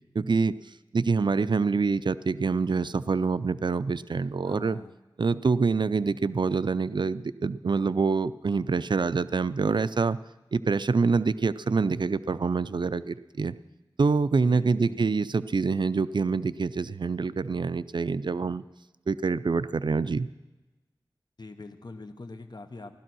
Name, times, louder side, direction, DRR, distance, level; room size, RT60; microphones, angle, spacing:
voice 1, 0.1-0.5 0.9-4.8 5.2-10.2 10.5-13.6 14.0-18.6 19.1-20.3, right 4 dB, 65° right, 15 dB, 0.4 m, -26 dB
voice 2, 4.4-4.9 14.4-15.1 21.4-23.0, left 3 dB, 60° left, 7 dB, 1.0 m, -43 dB
15.5 x 12.5 x 6.2 m, 1.1 s
wide cardioid pair, 60°, 8 cm